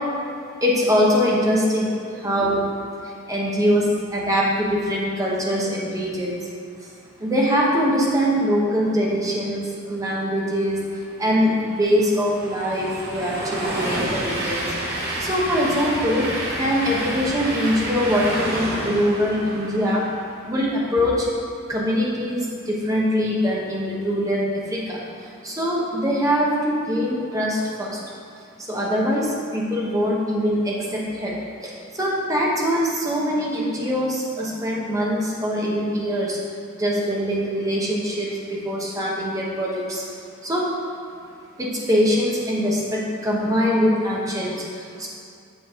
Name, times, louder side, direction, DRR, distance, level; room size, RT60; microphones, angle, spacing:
voice 1, 0.6-2.7 3.0-6.5 6.8-6.9 7.2-10.8 11.2-14.6 15.0-16.3 16.6-20.1 20.4-21.3 21.7-28.0 28.6-36.4 36.7-40.0 40.4-40.6 41.6-45.1, equal, 15° right, -4 dB, 1.1 m, -23 dB
Train, 11.0-20.5, right 1 dB, 50° right, 1.4 m, -29 dB
7.2 x 6.2 x 3.7 m, 2.4 s
head